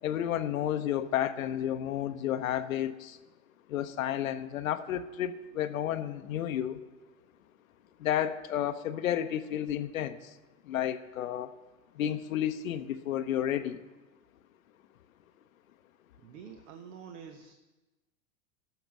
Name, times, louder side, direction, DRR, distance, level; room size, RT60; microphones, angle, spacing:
voice 1, 0.0-3.2 3.7-6.8 8.0-10.4 10.6-11.6 11.9-13.8, left 10 dB, 70° left, 9 dB, 0.7 m, -31 dB
voice 2, 16.2-17.5, right 7 dB, 60° right, 7 dB, 1.0 m, -47 dB
13.5 x 5.9 x 6.0 m, 1.1 s
hypercardioid pair, 100°, 42 cm